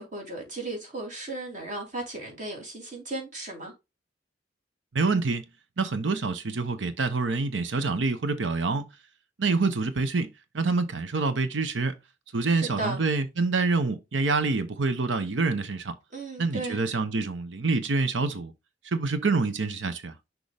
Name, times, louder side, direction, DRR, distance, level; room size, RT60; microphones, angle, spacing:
voice 1, 0.0-3.7 12.4-13.0 16.1-16.8, right 2 dB, 45° right, 3.2 m, -35 dB
voice 2, 4.9-5.4 5.8-8.9 9.4-10.3 10.5-12.0 12.3-15.9 16.4-18.5 18.8-20.1, right 3 dB, 90° right, 0.8 m, -26 dB
6.4 x 4.6 x 3.4 m
head